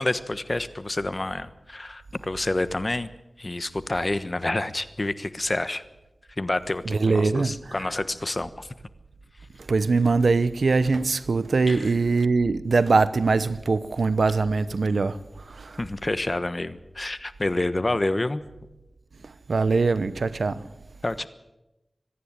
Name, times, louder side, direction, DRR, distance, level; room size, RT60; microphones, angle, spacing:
voice 1, 0.0-3.1 3.4-5.8 6.4-8.7 11.7-11.9 15.8-18.4 21.0-21.3, left 2 dB, 40° left, 1.2 m, -28 dB
voice 2, 6.9-7.9 9.6-15.2 15.5-15.8 19.2-20.7, right 4 dB, 90° right, 0.8 m, -22 dB
25.5 x 10.5 x 9.9 m
wide cardioid pair, 45°, 0 cm